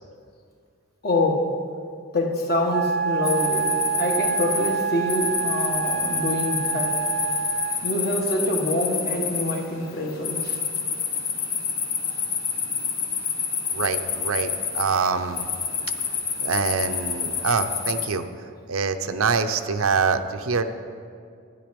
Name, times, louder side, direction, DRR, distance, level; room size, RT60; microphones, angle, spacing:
voice 1, 1.0-1.5 2.1-7.0 7.8-10.6 12.1-12.2, left 1 dB, 45° left, 1 dB, 1.4 m, -26 dB
Wind instrument woodwind instrument, 2.7-7.9, right 8 dB, 45° right, 0.4 m, -27 dB
sound 1, 3.2-18.1, left 6 dB, 70° left, 1.3 m, -28 dB
voice 2, 13.7-15.4 16.4-18.3 18.7-20.7, right 5 dB, 85° right, 8 dB, 0.7 m, -25 dB
12.0 x 9.5 x 5.2 m, 2.3 s
head